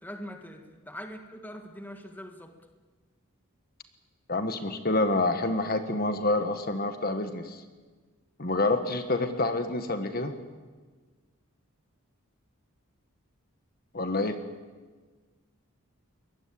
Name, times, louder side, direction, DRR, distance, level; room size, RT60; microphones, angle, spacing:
voice 1, 0.0-2.5, equal, 10° left, 4 dB, 1.7 m, -42 dB
voice 2, 4.3-7.6 8.4-10.3 13.9-14.4, left 2 dB, 45° left, 7 dB, 1.5 m, -27 dB
23.5 x 21.0 x 8.7 m, 1.4 s
head